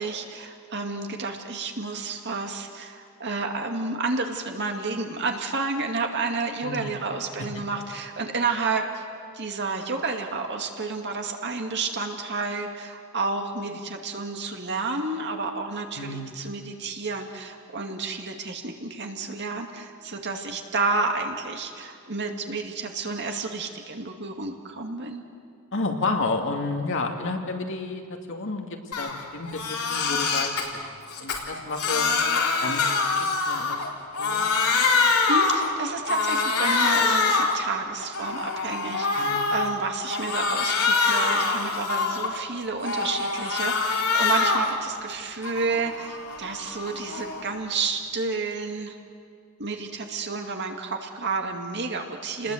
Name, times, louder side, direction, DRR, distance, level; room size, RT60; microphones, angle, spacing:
voice 1, 0.0-9.0 9.3-25.2 34.9-49.0 49.6-52.5, right 3 dB, 50° right, 3 dB, 2.3 m, -30 dB
voice 2, 6.6-6.9 16.0-16.4 25.7-28.0 28.3-30.9 31.2-32.1 32.6-33.8 34.2-34.4 39.2-39.5 52.4-52.5, left 3 dB, 60° left, 2 dB, 2.5 m, -31 dB
Crying sobbing, 28.9-29.1 29.5-30.6 31.1-33.9 34.1-35.7 36.1-37.6 38.0-39.7 40.1-42.4 42.8-44.7 45.1-47.5, left 4 dB, 80° left, 4.0 m, -25 dB
29.5 x 20.5 x 8.1 m, 2.2 s
head